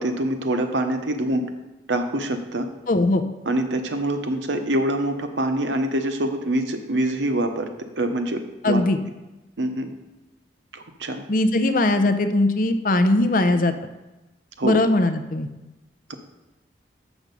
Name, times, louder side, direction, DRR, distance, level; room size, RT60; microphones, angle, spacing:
voice 1, 0.0-1.4 1.9-2.7 3.4-7.7 8.0-8.8 9.6-9.9 10.7-11.2 14.6-14.8 16.1-16.2, right 1 dB, 85° right, 6 dB, 0.9 m, -25 dB
voice 2, 2.9-3.2 8.6-9.0 11.3-13.7 14.6-15.5, left 2 dB, 50° left, 9 dB, 0.6 m, -20 dB
7.1 x 6.1 x 5.3 m, 1.0 s
head